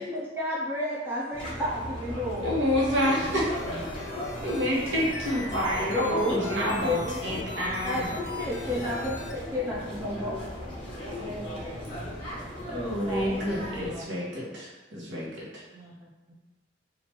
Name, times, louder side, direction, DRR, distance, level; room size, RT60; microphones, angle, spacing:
voice 1, 0.0-2.5 4.1-4.2 6.0-6.6 6.8-7.4 7.8-10.4 12.9-14.0 15.7-15.9, left 1 dB, 10° right, -7 dB, 0.5 m, -32 dB
sound 1, 1.3-13.9, equal, 25° left, 1.0 m, -37 dB
voice 2, 2.4-3.5 4.4-8.1 12.7-15.6, equal, 80° right, -5 dB, 1.0 m, -28 dB
sound 2, 3.0-9.3, left 3 dB, 85° left, 0.5 m, -41 dB
voice 3, 9.9-12.5, left 2 dB, 35° right, -7 dB, 1.2 m, -41 dB
3.1 x 2.4 x 4.4 m, 1.1 s
head